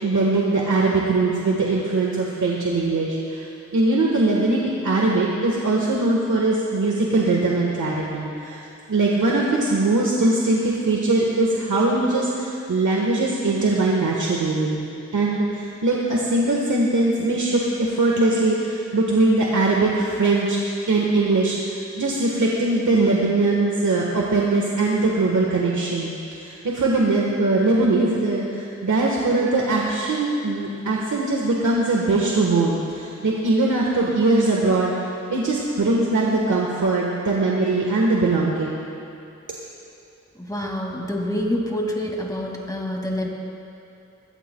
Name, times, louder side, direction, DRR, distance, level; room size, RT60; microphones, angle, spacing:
voice 1, 0.0-3.5 3.7-8.6 8.9-14.9 15.1-20.6 20.9-34.9 35.3-38.8, right 2 dB, 80° right, -3 dB, 1.5 m, -21 dB
voice 2, 40.4-43.3, left 1 dB, 10° left, -1 dB, 2.3 m, -27 dB
21.5 x 15.0 x 2.3 m, 2.7 s
wide cardioid pair, 65°, 30 cm